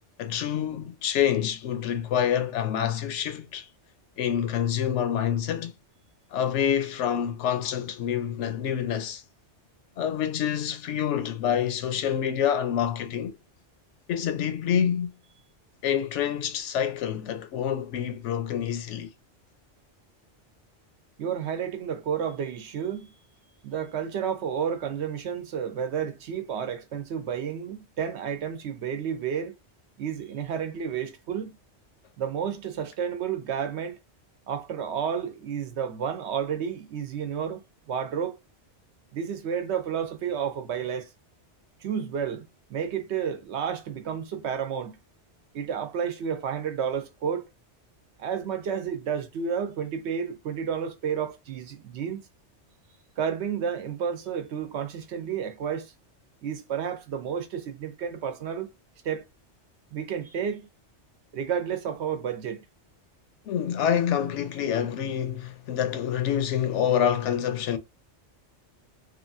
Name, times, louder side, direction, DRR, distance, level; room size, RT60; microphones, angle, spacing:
voice 1, 0.2-3.7 4.2-5.7 6.3-9.2 10.0-13.4 14.1-15.1 15.8-19.1 63.5-67.8, left 9 dB, 80° left, 0.9 m, -27 dB
voice 2, 21.2-23.1 23.6-29.5 30.0-31.5 32.2-34.0 34.5-37.6 37.9-38.4 39.1-41.1 41.8-45.0 45.5-47.5 48.2-52.2 53.2-55.9 56.4-58.7 59.0-59.3 59.9-60.7 61.3-62.6, right 7 dB, 75° right, 0.9 m, -31 dB
2.9 x 2.5 x 2.5 m
omnidirectional pair, 1.2 m